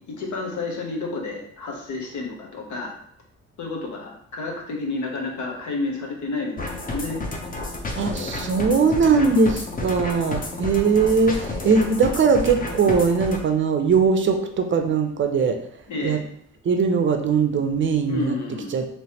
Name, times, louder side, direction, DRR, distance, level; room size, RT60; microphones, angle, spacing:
voice 1, 0.1-2.9 3.6-7.2 9.1-9.6 15.9-16.2 18.1-18.8, left 3 dB, 75° left, 0 dB, 0.9 m, -30 dB
sound 1, 6.6-13.4, left 2 dB, 30° left, 0.6 m, -31 dB
voice 2, 8.0-9.5 9.8-15.6 16.0-16.2 16.6-18.3 18.7-18.8, right 5 dB, 40° right, 6 dB, 0.5 m, -20 dB
3.2 x 3.0 x 2.9 m, 0.65 s
cardioid pair, 90°, 30 cm